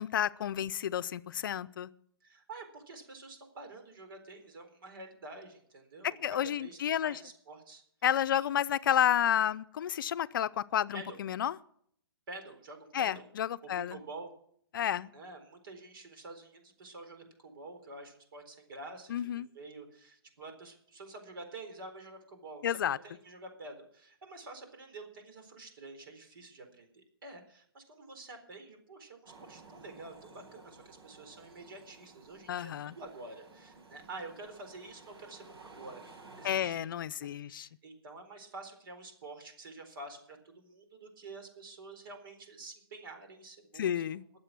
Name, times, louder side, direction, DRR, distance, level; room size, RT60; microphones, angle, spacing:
voice 1, 0.0-1.9 6.0-7.2 8.0-11.6 12.9-14.0 14.7-15.1 19.1-19.5 22.6-23.0 32.5-33.0 36.4-37.7 43.7-44.2, left 10 dB, 55° left, 16 dB, 0.6 m, -31 dB
voice 2, 2.2-7.8 8.3-8.4 10.9-11.2 12.3-13.2 13.9-14.3 15.1-36.9 37.2-44.2, right 2 dB, 60° right, 6 dB, 4.2 m, -48 dB
sound 1, 29.2-36.7, right 3 dB, 85° right, 5.8 m, -55 dB
20.5 x 7.6 x 6.2 m, 0.65 s
hypercardioid pair, 150°, 13 cm